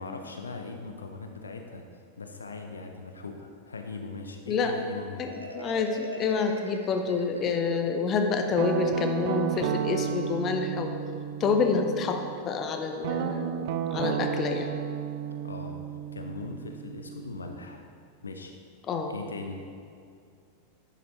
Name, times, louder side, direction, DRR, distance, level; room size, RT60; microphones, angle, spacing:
voice 1, 0.0-1.8 2.2-5.3 15.4-15.8 16.1-17.8 18.2-18.5 19.1-19.6, left 3 dB, 75° left, 4 dB, 0.6 m, -40 dB
Marimba xylophone, 5.2-8.0, left 1 dB, 85° right, 0.7 m, -41 dB
voice 2, 5.5-10.9 11.4-14.7 18.9-19.1, left 4 dB, 30° left, 5 dB, 0.8 m, -28 dB
Guitar, 8.6-12.3 13.0-17.8, right 8 dB, 50° right, 0.4 m, -33 dB
10.5 x 6.8 x 3.2 m, 2.4 s
figure-of-eight pair, 90°, 0 cm